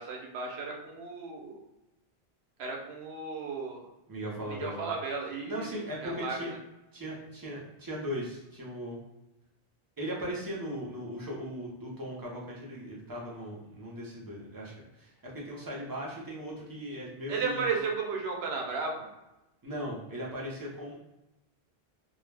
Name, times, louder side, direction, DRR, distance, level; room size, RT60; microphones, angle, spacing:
voice 1, 0.0-1.6 2.6-3.8 4.6-5.7 6.0-6.4 17.3-19.1, right 4 dB, 75° right, 0 dB, 0.9 m, -34 dB
voice 2, 4.1-4.9 5.5-6.5 6.9-9.0 10.0-17.7 19.6-20.9, equal, 25° right, -4 dB, 0.5 m, -38 dB
2.3 x 2.1 x 3.2 m, 0.97 s
omnidirectional pair, 1.1 m